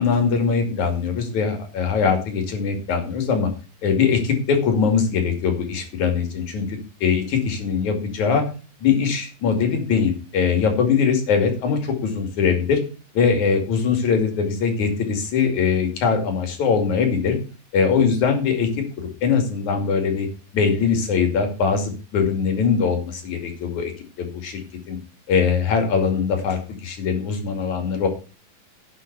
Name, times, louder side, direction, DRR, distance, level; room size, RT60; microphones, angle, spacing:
voice 1, 0.0-3.5 3.8-8.4 8.8-12.8 13.2-17.4 17.7-18.7 19.0-20.3 20.5-23.9 24.2-25.0 25.3-28.1, left 6 dB, 60° left, 5 dB, 3.7 m, -21 dB
10.0 x 5.6 x 8.0 m, 0.35 s
omnidirectional pair, 3.8 m